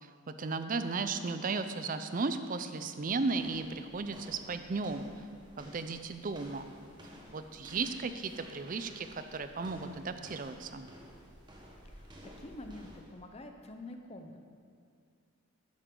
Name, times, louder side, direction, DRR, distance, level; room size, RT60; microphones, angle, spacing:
voice 1, 0.0-5.2 5.6-6.7 7.3-10.9, right 4 dB, 40° right, 10 dB, 0.4 m, -35 dB
sound 1, 3.3-13.2, equal, 20° right, 1.2 m, -53 dB
voice 2, 11.9-14.4, left 1 dB, 30° left, 5 dB, 0.7 m, -47 dB
11.5 x 9.4 x 3.8 m, 2.2 s
head